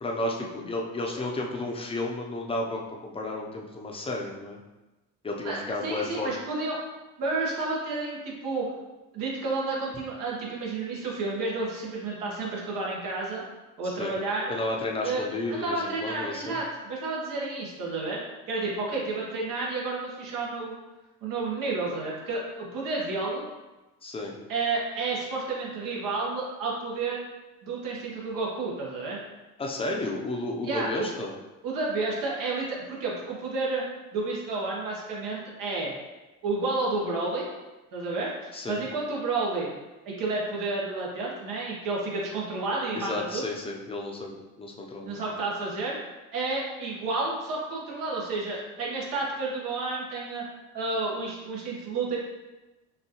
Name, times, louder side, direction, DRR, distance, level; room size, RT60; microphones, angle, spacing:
voice 1, 0.0-4.6 5.2-6.3 14.0-14.1 14.5-16.6 24.0-24.3 29.6-31.3 38.5-38.8 42.9-45.2, left 2 dB, 15° left, 0 dB, 0.7 m, -32 dB
voice 2, 5.4-6.8 7.2-8.7 9.1-13.4 13.8-14.5 15.0-18.2 18.5-20.8 21.2-23.4 24.5-27.2 27.6-29.2 30.6-31.1 31.6-33.8 34.1-35.9 36.4-37.4 37.9-39.7 40.0-43.4 45.0-46.0 46.3-50.4 50.7-52.2, right 3 dB, 65° right, -3 dB, 1.4 m, -31 dB
5.6 x 2.6 x 3.0 m, 1.1 s
cardioid pair, 105°, 35 cm